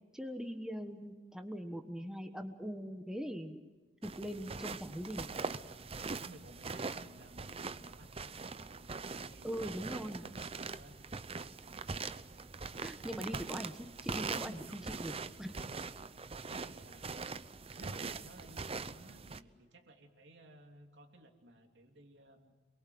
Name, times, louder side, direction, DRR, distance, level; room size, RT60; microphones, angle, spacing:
voice 1, 0.1-3.6 4.0-5.3 9.4-10.2 12.8-14.6 14.9-15.1 15.4-15.5, equal, 5° right, 5 dB, 1.3 m, -41 dB
sound 1, 4.0-19.4, right 4 dB, 35° right, 0.7 m, -42 dB
voice 2, 6.2-11.2 13.0-13.4 14.4-15.1 15.7-17.2 17.7-22.6, right 1 dB, 75° right, 3 dB, 3.0 m, -57 dB
28.0 x 23.0 x 7.9 m, 1.2 s
head